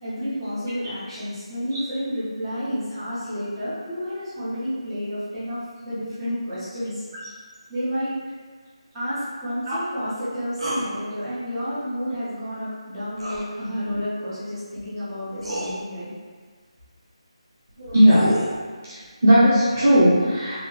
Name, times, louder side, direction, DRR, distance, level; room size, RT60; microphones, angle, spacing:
voice 1, 0.0-7.0 7.7-8.1 8.9-16.1, equal, ahead, -25 dB, 0.5 m, -30 dB
sound 1, 10.6-10.9 13.2-13.5 14.8-14.9 15.4-15.7 17.7-18.6, right 1 dB, 60° right, 0.8 m, -29 dB
voice 2, 17.8-18.3 18.9-20.6, equal, 25° right, -11 dB, 0.8 m, -17 dB
2.8 x 2.6 x 2.8 m, 1.5 s
figure-of-eight pair, 180°, 3 cm